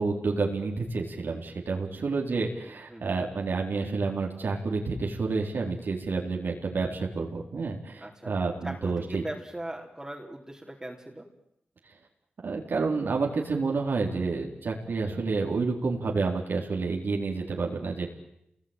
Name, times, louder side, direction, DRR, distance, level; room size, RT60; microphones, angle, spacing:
voice 1, 0.0-9.2 12.4-18.1, right 4 dB, 75° right, 0 dB, 4.2 m, -29 dB
voice 2, 2.9-3.2 8.0-8.3 8.6-11.3, right 1 dB, 15° right, -1 dB, 3.8 m, -39 dB
28.0 x 20.5 x 9.2 m, 0.81 s
cardioid pair, 65°, 3 cm